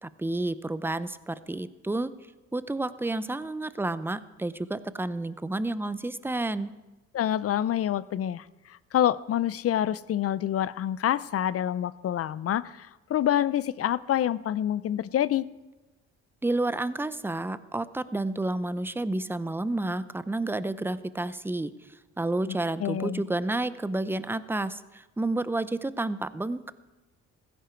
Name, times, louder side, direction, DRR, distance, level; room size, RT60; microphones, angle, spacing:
voice 1, 0.0-2.1 2.5-6.7 16.4-26.7, right 2 dB, 5° right, 15 dB, 0.6 m, -30 dB
voice 2, 7.1-15.5 22.5-23.2, left 11 dB, 50° left, 19 dB, 0.5 m, -27 dB
15.5 x 14.5 x 4.5 m, 1.1 s
cardioid pair, 90°, 30 cm